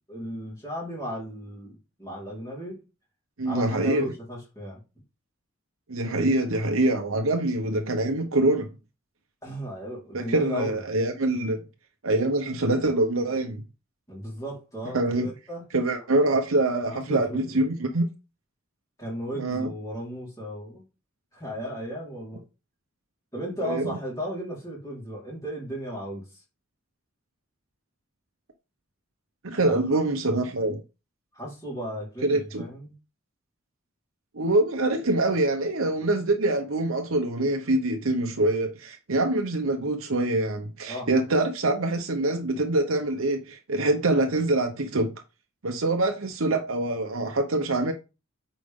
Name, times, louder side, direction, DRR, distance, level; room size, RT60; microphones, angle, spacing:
voice 1, 0.1-2.8 3.4-4.8 9.4-10.8 14.1-15.6 16.9-17.6 19.0-20.8 21.3-22.4 23.3-26.4 29.7-29.8 31.3-32.9 40.9-41.1, equal, 15° left, 4.4 m, -35 dB
voice 2, 3.4-4.1 5.9-8.7 10.1-11.6 12.0-13.6 14.9-15.3 15.7-18.1 19.3-19.7 23.6-23.9 29.4-30.8 32.2-32.6 34.3-45.1 45.6-47.9, right 2 dB, 85° right, 1.0 m, -25 dB
8.8 x 5.1 x 3.7 m
head